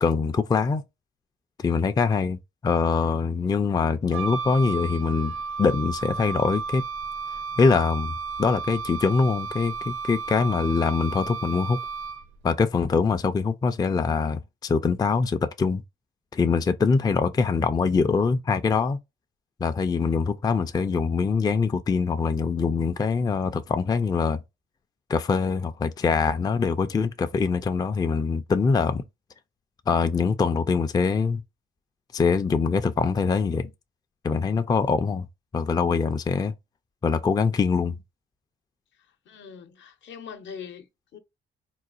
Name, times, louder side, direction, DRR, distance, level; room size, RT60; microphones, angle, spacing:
voice 1, 0.0-0.8 1.6-6.8 7.6-11.8 12.4-15.8 16.3-19.0 19.6-24.4 25.1-29.0 29.9-31.4 32.1-33.7 34.2-35.3 35.5-36.5 37.0-38.0, left 5 dB, 20° left, 0.4 m, -23 dB
Wind instrument woodwind instrument, 4.1-12.4, right 5 dB, 80° right, 0.7 m, -33 dB
voice 2, 39.3-41.2, left 7 dB, 70° left, 0.7 m, -42 dB
3.8 x 2.3 x 2.5 m
cardioid pair, 90°, 20 cm